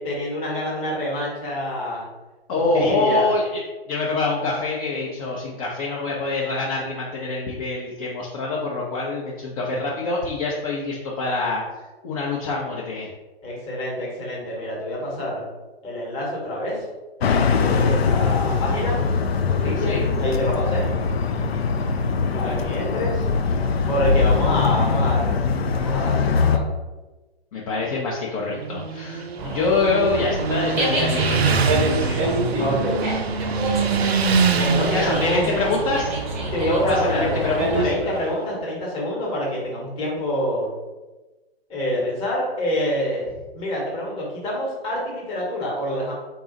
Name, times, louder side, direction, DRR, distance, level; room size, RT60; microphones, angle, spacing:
voice 1, 0.0-2.0 2.5-3.3 13.4-15.4 15.8-16.8 17.6-19.0 19.5-20.9 22.3-23.3 23.9-25.4 25.7-26.7 29.7-29.8 32.6-33.1 33.5-35.6 36.5-37.3 37.7-40.7 41.7-43.3 43.5-46.1, left 1 dB, 15° left, -4 dB, 1.1 m, -26 dB
voice 2, 2.5-3.6 3.9-11.6 12.0-13.1 19.8-20.0 22.4-22.7 27.5-32.3 34.9-36.1 36.9-37.9, left 3 dB, 35° left, -3 dB, 0.6 m, -25 dB
sound 1, 17.2-26.6, left 5 dB, 75° left, 0.5 m, -22 dB
Motorcycle, 28.5-38.3, right 5 dB, 75° right, 0.5 m, -25 dB
Dog, 29.4-37.9, right 2 dB, 20° right, 0.7 m, -27 dB
3.9 x 2.3 x 3.9 m, 1.2 s
figure-of-eight pair, 130°, 31 cm